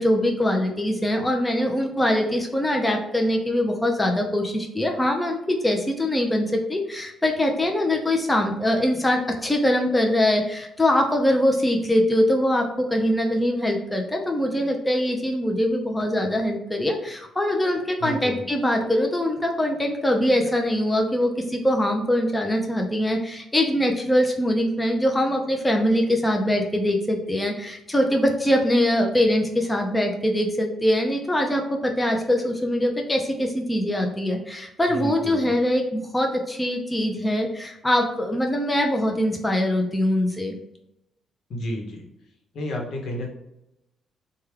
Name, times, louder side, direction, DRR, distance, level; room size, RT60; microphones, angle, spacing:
voice 1, 0.0-40.5, left 1 dB, 10° left, 2 dB, 0.5 m, -23 dB
voice 2, 18.0-18.4 34.9-35.5 41.5-42.0 42.5-43.3, left 1 dB, 65° left, 0 dB, 1.0 m, -31 dB
3.2 x 2.3 x 3.2 m, 0.85 s
cardioid pair, 90°, 0 cm